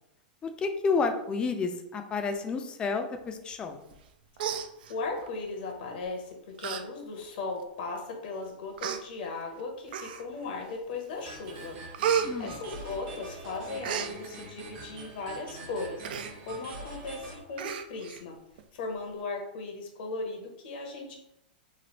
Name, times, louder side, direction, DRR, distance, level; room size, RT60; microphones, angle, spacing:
voice 1, 0.4-3.8 12.2-12.5, left 4 dB, 15° left, 5 dB, 0.4 m, -30 dB
Human voice, 3.9-4.1 4.4-5.3 6.0-6.2 6.6-6.8 7.2-7.3 8.1-8.2 8.8-9.0 9.9-10.4 10.9-11.3 11.6-13.3 13.5-14.1 16.0-16.3 16.7-16.8 17.1-17.2 17.6-18.2 18.6-18.7, right 8 dB, 70° right, 0.3 m, -32 dB
voice 2, 4.9-11.8 12.4-16.0 16.4-18.4 18.7-21.2, left 3 dB, 65° left, 3 dB, 0.8 m, -37 dB
sound 1, 11.2-17.4, right 2 dB, 50° right, 0.8 m, -44 dB
3.1 x 2.4 x 2.9 m, 0.84 s
hypercardioid pair, 135°, 5 cm